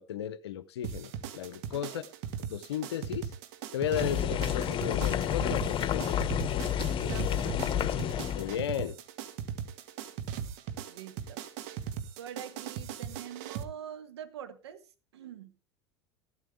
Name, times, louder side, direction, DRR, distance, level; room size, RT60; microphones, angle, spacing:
voice 1, 0.0-2.0 2.5-3.3 3.7-6.2 8.3-9.0, left 10 dB, 75° left, 0.7 m, -34 dB
sound 1, 0.8-13.6, right 9 dB, 55° right, 1.6 m, -39 dB
voice 2, 1.7-2.1 4.0-4.1 7.0-7.8 10.9-11.4 12.2-14.9 15.1-15.5, right 9 dB, 75° right, 1.6 m, -45 dB
sound 2, 3.9-8.6, left 9 dB, 35° left, 1.2 m, -30 dB
14.5 x 12.5 x 3.4 m
figure-of-eight pair, 80°, 14 cm